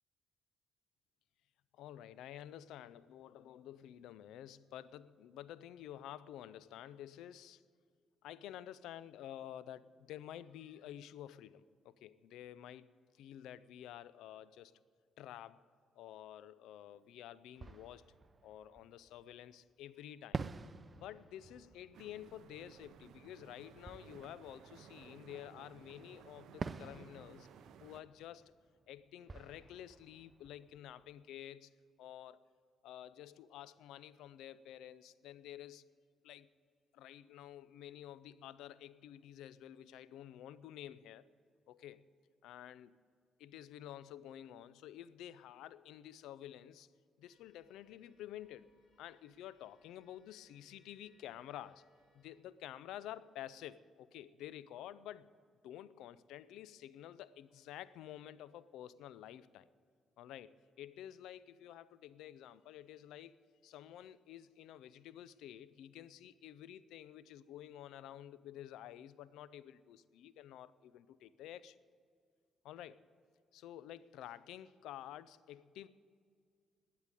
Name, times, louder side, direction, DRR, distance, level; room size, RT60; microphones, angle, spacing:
voice 1, 1.7-7.6 8.2-12.9 13.1-14.7 15.2-15.6 15.9-18.1 18.4-20.4 20.9-27.5 27.8-28.5 28.9-31.7 32.0-32.5 32.8-35.9 36.2-36.5 36.9-41.3 41.7-42.0 42.4-43.0 43.4-46.9 47.2-48.7 49.0-51.8 52.1-55.3 55.6-59.7 60.2-63.4 63.6-71.8 72.6-73.0 73.5-75.9, left 11 dB, 90° left, 17 dB, 0.5 m, -51 dB
Fireworks, 16.9-17.0 17.5-19.5 20.3-25.7 26.6-31.3, right 4 dB, 35° right, 0.6 m, -49 dB
sound 1, 21.9-28.0, right 8 dB, 75° right, 0.7 m, -58 dB
sound 2, 47.2-52.4, left 2 dB, 45° left, 3.8 m, -75 dB
12.0 x 9.0 x 9.8 m, 2.1 s
cardioid pair, 90°, 0 cm